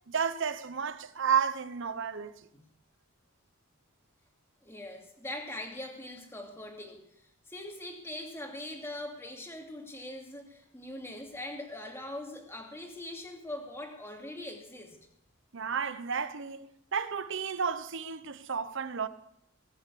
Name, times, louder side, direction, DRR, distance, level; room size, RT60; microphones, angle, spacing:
voice 1, 0.1-2.5 15.5-19.1, right 6 dB, 60° right, 0.9 m, -32 dB
voice 2, 4.6-7.2 7.5-15.0, left 1 dB, 10° left, 2.6 m, -42 dB
20.0 x 7.5 x 8.5 m
head